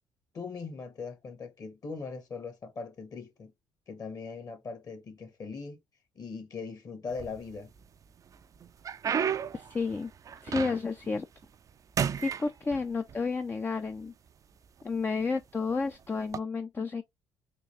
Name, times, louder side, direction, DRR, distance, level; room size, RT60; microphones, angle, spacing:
voice 1, 0.3-3.5 3.9-5.8 6.1-7.7, left 4 dB, 45° left, 1.4 m, -40 dB
sound 1, 7.1-7.8 8.3-11.1 11.4-11.7 12.0-13.2 14.0-14.1 14.8-15.0 16.2-16.4, right 7 dB, 40° right, 0.4 m, -33 dB
voice 2, 9.5-10.1 10.4-11.3 12.2-14.1 14.8-17.0, left 4 dB, 20° left, 0.4 m, -31 dB
3.7 x 2.4 x 3.2 m
supercardioid pair, 70°, 9 cm